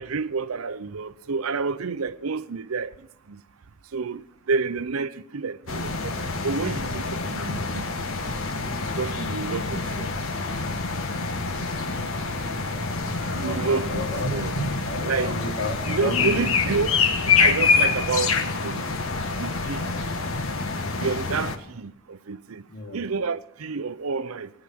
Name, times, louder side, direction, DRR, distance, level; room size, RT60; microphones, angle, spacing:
voice 1, 0.0-2.9 3.9-4.2 4.5-7.9 9.0-10.1 13.3-14.0 14.3-14.5 15.0-15.4 15.9-16.9 17.4-18.3 18.6-18.8 19.4-19.9 21.0-22.6 22.9-24.5, right 4 dB, 90° right, 0.6 m, -29 dB
sound 1, 5.7-21.6, left 4 dB, 75° left, 1.3 m, -26 dB
voice 2, 11.7-12.1 13.3-16.9 22.7-23.0, left 1 dB, 55° left, 2.9 m, -32 dB
19.0 x 9.8 x 6.2 m
head